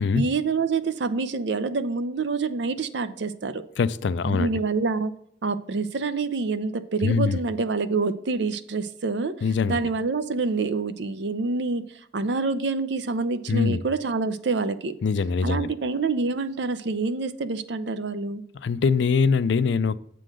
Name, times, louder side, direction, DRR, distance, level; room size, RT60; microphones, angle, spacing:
voice 1, 0.0-3.6 4.2-5.1 5.4-9.3 9.7-11.8 12.1-14.9 15.4-18.4, right 4 dB, 65° right, 12 dB, 0.5 m, -27 dB
voice 2, 3.8-4.5 7.0-7.4 9.4-9.8 13.5-13.8 15.0-15.7 18.6-20.0, left 5 dB, 65° left, 15 dB, 0.4 m, -23 dB
7.6 x 3.8 x 6.3 m, 0.70 s
head